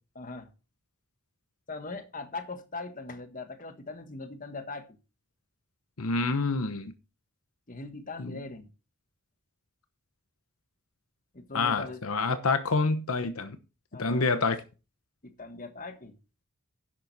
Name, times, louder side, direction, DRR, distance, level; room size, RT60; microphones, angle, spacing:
voice 1, 0.1-0.5 1.7-4.9 7.7-8.7 11.3-12.0 13.9-14.3 15.2-16.2, left 3 dB, 40° left, 1.4 m, -40 dB
voice 2, 6.0-6.9 8.2-8.4 11.5-13.6 14.0-14.6, left 3 dB, 80° left, 1.0 m, -27 dB
11.0 x 7.6 x 4.1 m
head